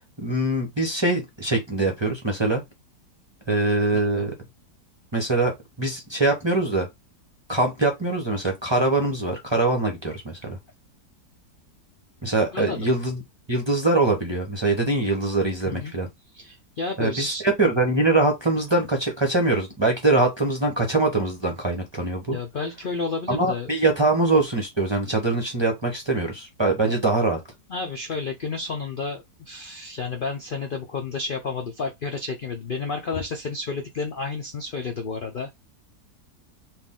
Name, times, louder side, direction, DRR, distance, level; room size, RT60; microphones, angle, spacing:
voice 1, 0.2-2.6 3.5-4.3 5.1-5.5 5.8-6.9 7.5-10.6 12.2-13.2 13.5-16.1 17.0-22.4 23.3-27.4, right 2 dB, 20° right, 0.8 m, -23 dB
voice 2, 3.9-4.2 12.5-12.9 15.6-15.9 16.3-17.4 22.3-23.7 26.8-26.9 27.7-35.5, left 4 dB, 60° left, 0.5 m, -31 dB
4.2 x 2.6 x 3.7 m
omnidirectional pair, 1.8 m